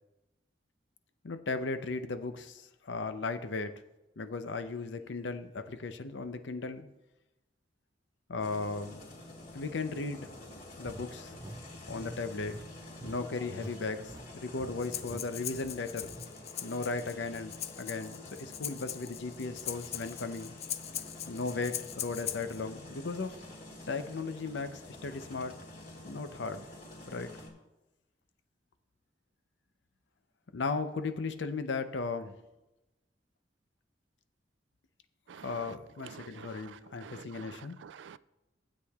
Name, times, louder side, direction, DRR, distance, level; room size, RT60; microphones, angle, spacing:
voice 1, 1.2-3.7 4.2-6.9 8.3-9.0 9.5-10.3 10.8-11.3 11.9-12.6 13.0-16.1 16.6-20.5 21.3-23.3 23.9-25.5 26.0-26.6 27.1-27.3 30.5-32.4 35.3-37.8, left 3 dB, 80° left, 9 dB, 0.6 m, -36 dB
sound 1, 8.4-27.5, left 1 dB, 55° left, 2.4 m, -49 dB
sound 2, 10.8-13.8 14.0-14.3 14.6-14.7 15.0-15.2 15.6-16.3, right 1 dB, 20° right, 0.5 m, -46 dB
Breathing, 14.8-22.6, left 10 dB, 35° left, 0.4 m, -41 dB
voice 2, 36.1-36.5 37.0-37.6 37.8-38.2, right 7 dB, 75° right, 17 dB, 0.3 m, -48 dB
15.5 x 8.2 x 2.4 m, 1.0 s
head